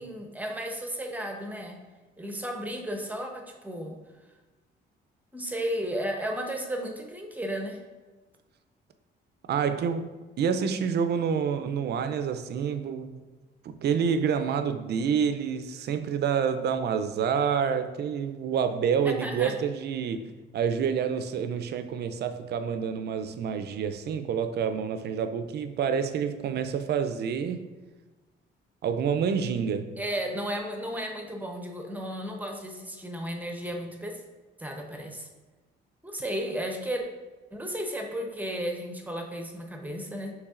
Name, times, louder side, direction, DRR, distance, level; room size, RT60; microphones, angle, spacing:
voice 1, 0.0-1.8 2.2-4.0 5.3-7.8 19.0-19.5 30.0-34.2 34.6-35.3 36.0-37.0 37.5-40.3, equal, 10° right, 0.7 m, -34 dB
voice 2, 9.5-13.2 13.6-27.6 28.8-29.9, right 7 dB, 55° right, 0.4 m, -28 dB
6.2 x 3.1 x 2.4 m
cardioid pair, 90°, 20 cm